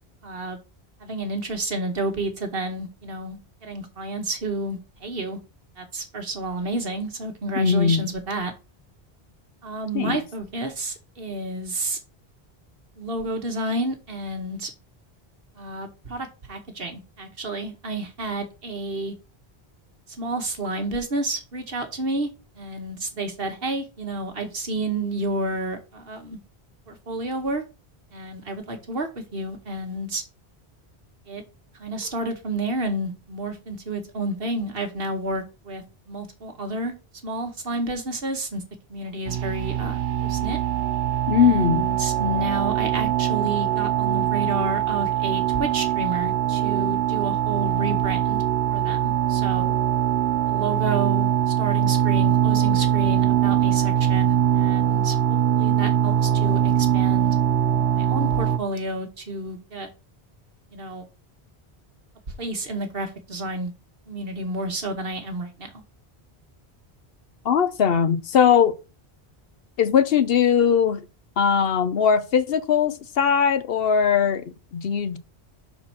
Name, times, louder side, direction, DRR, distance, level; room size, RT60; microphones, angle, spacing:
voice 1, 0.2-0.6 1.0-5.4 5.8-8.5 9.6-12.0 13.0-14.7 15.6-19.1 20.2-22.3 22.6-26.4 26.9-27.6 28.1-30.2 31.3-31.4 31.8-36.9 37.2-38.6 38.9-40.6 41.3-48.4 48.7-49.8 50.5-57.4 57.9-59.9 60.7-61.1 62.4-63.7 64.1-65.7, right 2 dB, 60° right, 1.5 m, -30 dB
voice 2, 7.6-8.1 9.9-10.2 41.3-41.8 67.4-68.8 69.8-71.0 71.4-75.2, left 7 dB, 65° left, 0.9 m, -20 dB
sound 1, 39.3-58.6, right 10 dB, 80° right, 0.9 m, -22 dB
5.8 x 4.3 x 6.0 m
omnidirectional pair, 1.1 m